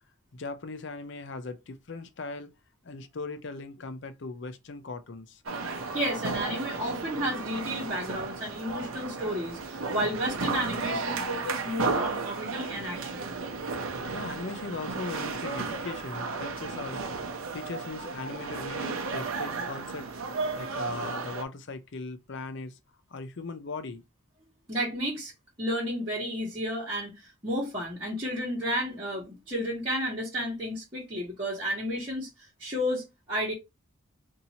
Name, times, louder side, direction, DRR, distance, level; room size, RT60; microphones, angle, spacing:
voice 1, 0.3-2.5 2.8-5.4 14.1-20.1 20.6-22.8 23.1-24.0, left 3 dB, 55° left, 0.5 m, -39 dB
sound 1, 5.5-21.4, right 3 dB, 70° right, 0.7 m, -34 dB
voice 2, 5.9-13.2 24.7-25.3 25.6-32.3 32.6-33.5, equal, 25° right, 1.4 m, -32 dB
2.8 x 2.7 x 4.1 m
head